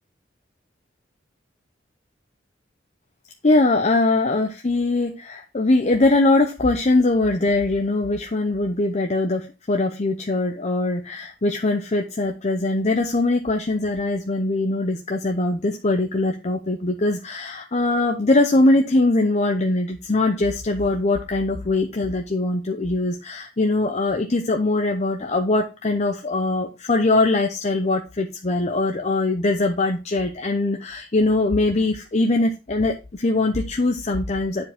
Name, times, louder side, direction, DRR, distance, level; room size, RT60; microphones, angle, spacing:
voice 1, 3.4-34.7, left 2 dB, 40° left, 3 dB, 0.7 m, -21 dB
10.0 x 4.7 x 3.5 m, 0.28 s
head